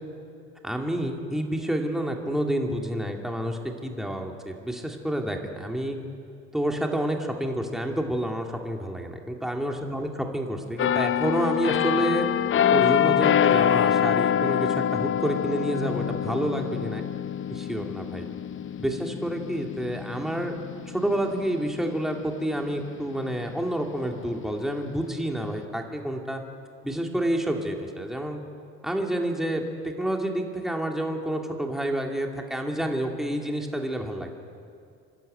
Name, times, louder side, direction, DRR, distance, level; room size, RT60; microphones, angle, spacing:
voice 1, 0.6-6.0 6.5-12.3 12.7-17.0 17.5-18.3 18.8-20.6 20.9-26.4 26.8-28.4 28.8-34.4, right 1 dB, ahead, 2 dB, 2.4 m, -29 dB
sound 1, 10.8-22.3 22.8-23.0, left 9 dB, 40° left, 0.6 m, -25 dB
28.0 x 12.0 x 9.3 m, 2.4 s
cardioid pair, 100°, 32 cm